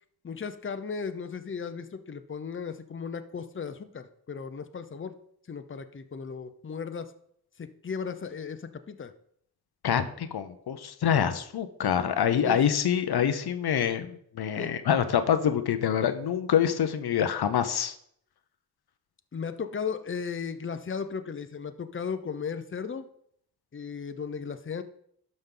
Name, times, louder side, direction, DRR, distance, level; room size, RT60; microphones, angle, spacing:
voice 1, 0.2-5.1 5.5-7.1 7.6-9.1 12.4-12.7 14.6-14.8 19.3-23.1 23.7-24.8, left 6 dB, 35° left, 9 dB, 0.7 m, -36 dB
voice 2, 9.8-18.0, left 8 dB, 80° left, 10 dB, 0.7 m, -26 dB
11.5 x 5.3 x 3.8 m, 0.67 s
cardioid pair, 70°, 37 cm